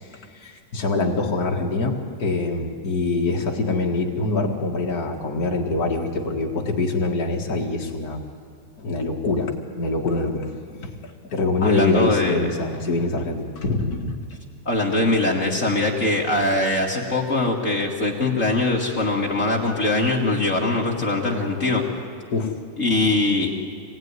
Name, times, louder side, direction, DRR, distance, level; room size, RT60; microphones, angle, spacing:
voice 1, 0.1-8.2 8.8-14.1 22.3-22.5, left 3 dB, 85° left, 0 dB, 0.8 m, -24 dB
voice 2, 11.6-12.5 14.6-21.8 22.8-23.5, left 2 dB, 35° left, -1 dB, 1.3 m, -22 dB
25.5 x 19.0 x 9.6 m, 2.2 s
omnidirectional pair, 4.5 m